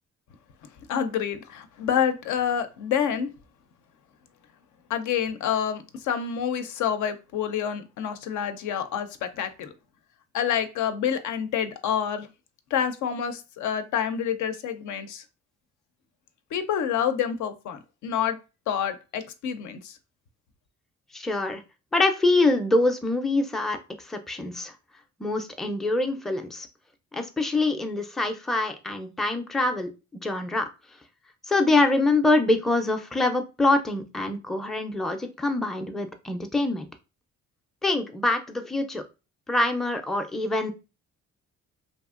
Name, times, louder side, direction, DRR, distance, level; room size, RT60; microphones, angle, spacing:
voice 1, 0.9-3.3 4.9-9.7 10.3-12.3 12.7-15.2 16.5-18.4 18.7-20.0, left 8 dB, 75° left, 0.5 m, -28 dB
voice 2, 21.1-21.6 21.9-24.7 25.2-26.7 27.1-30.7 31.5-36.9 37.8-39.0 39.5-40.7, left 2 dB, ahead, 0.4 m, -25 dB
2.9 x 2.5 x 2.4 m
cardioid pair, 90°, 30 cm